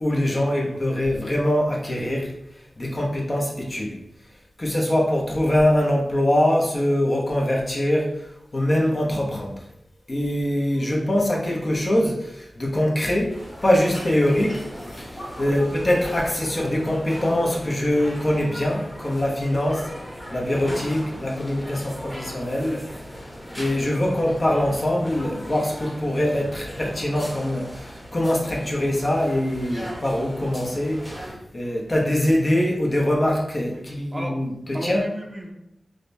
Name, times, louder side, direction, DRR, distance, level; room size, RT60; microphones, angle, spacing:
voice 1, 0.0-2.3 2.8-3.9 4.6-8.3 8.5-9.5 10.1-14.6 15.0-19.8 20.3-22.8 23.6-31.0 31.5-35.1, left 1 dB, 35° left, -1 dB, 0.7 m, -23 dB
sound 1, 13.3-31.3, equal, 5° left, 1.0 m, -38 dB
voice 2, 34.7-35.5, right 1 dB, 30° right, 1 dB, 0.6 m, -35 dB
4.9 x 2.2 x 2.6 m, 0.81 s
wide cardioid pair, 95°, 0 cm